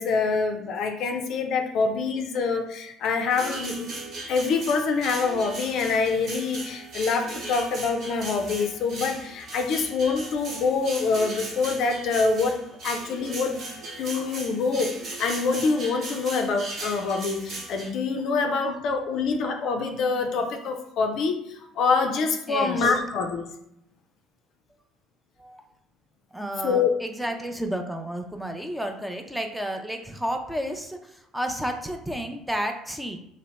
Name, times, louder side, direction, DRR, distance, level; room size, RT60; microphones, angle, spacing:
voice 1, 0.0-3.9 4.3-12.6 12.8-13.6 14.0-14.9 15.2-21.4 21.8-23.5 26.6-26.9, left 4 dB, 60° left, 4 dB, 0.4 m, -25 dB
sound 1, 3.3-17.9, right 2 dB, 55° right, 1.1 m, -38 dB
voice 2, 22.5-23.0 25.4-25.6 26.3-33.2, equal, 5° right, 4 dB, 0.4 m, -31 dB
2.8 x 2.0 x 3.3 m, 0.77 s
hypercardioid pair, 60°, 0 cm